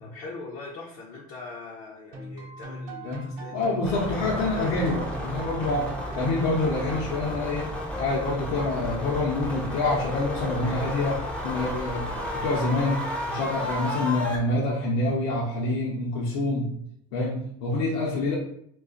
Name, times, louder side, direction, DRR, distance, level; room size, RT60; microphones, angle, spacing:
voice 1, 0.0-3.7 4.1-4.8, left 3 dB, 55° left, -3 dB, 0.6 m, -42 dB
sound 1, 2.1-7.3, right 1 dB, 60° right, 0.7 m, -39 dB
voice 2, 3.0-7.7 8.0-16.7 17.1-18.3, left 2 dB, 80° left, -4 dB, 0.8 m, -27 dB
sound 2, 3.8-14.4, left 1 dB, 5° left, 0.4 m, -33 dB
2.4 x 2.3 x 3.8 m, 0.70 s
cardioid pair, 150°, 17 cm